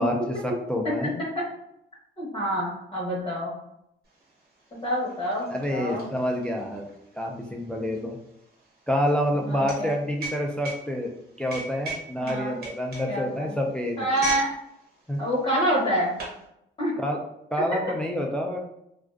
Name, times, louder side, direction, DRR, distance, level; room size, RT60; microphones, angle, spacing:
voice 1, 0.0-1.2 5.5-6.9 7.1-8.2 8.9-11.1 11.4-14.1 15.1-15.2 17.0-17.2 17.5-18.7, equal, 5° left, 1 dB, 0.3 m, -27 dB
voice 2, 0.8-1.4 2.2-3.5 4.8-6.1 9.4-9.9 12.2-12.6 13.1-13.5 14.0-14.5 15.2-16.2 16.8-16.9, equal, 25° left, -5 dB, 0.8 m, -27 dB
sound 1, 4.2-4.3 4.6-14.5 14.8-15.1 15.7-16.4, right 2 dB, 50° right, 1.1 m, -38 dB
2.4 x 2.2 x 2.3 m, 0.80 s
cardioid pair, 90°, 20 cm